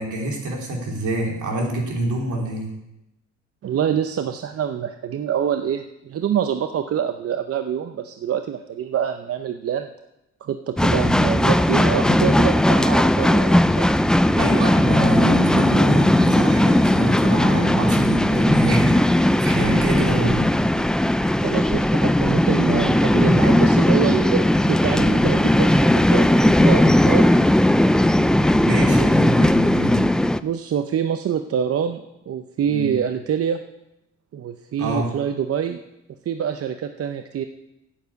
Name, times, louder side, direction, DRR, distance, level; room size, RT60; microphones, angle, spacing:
voice 1, 0.0-2.7 14.3-20.5 28.6-30.1 32.7-32.9 34.8-35.1, right 1 dB, 75° right, 0 dB, 3.3 m, -26 dB
voice 2, 3.6-9.9 10.4-13.9 21.4-25.8 26.1-27.3 29.0-29.2 30.4-33.6 34.3-35.8 36.2-37.4, right 8 dB, 50° right, 8 dB, 0.7 m, -25 dB
sound 1, 10.8-30.4, left 1 dB, 5° left, 0.3 m, -17 dB
9.2 x 7.4 x 8.2 m, 0.89 s
cardioid pair, 90°, 30 cm